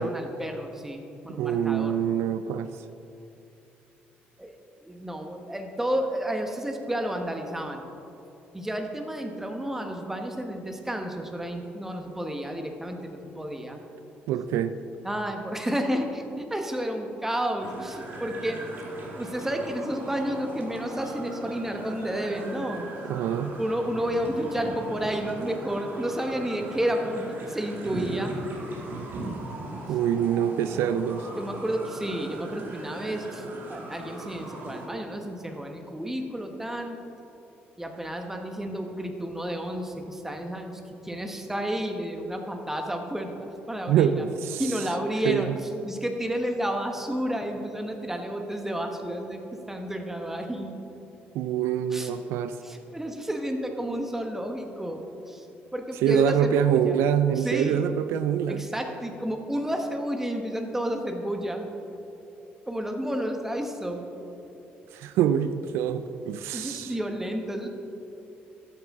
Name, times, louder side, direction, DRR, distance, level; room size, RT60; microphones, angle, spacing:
voice 1, 0.0-2.0 4.4-7.9 8.5-13.8 15.0-18.6 19.1-22.9 23.6-28.4 30.7-30.9 31.4-37.0 37.8-44.3 44.6-50.7 51.9-52.1 52.6-55.5 55.7-57.0 57.4-57.9 58.5-61.7 62.7-64.0 66.5-67.7, equal, 10° right, 4 dB, 1.2 m, -31 dB
voice 2, 1.4-2.7 14.3-14.8 23.0-23.5 29.9-31.3 43.9-44.6 45.3-45.6 51.3-52.6 56.0-58.6 64.9-66.9, right 9 dB, 80° right, 11 dB, 0.3 m, -25 dB
sound 1, 17.6-34.9, right 2 dB, 55° right, 1.9 m, -39 dB
12.5 x 8.0 x 3.7 m, 2.9 s
cardioid pair, 85°, 4 cm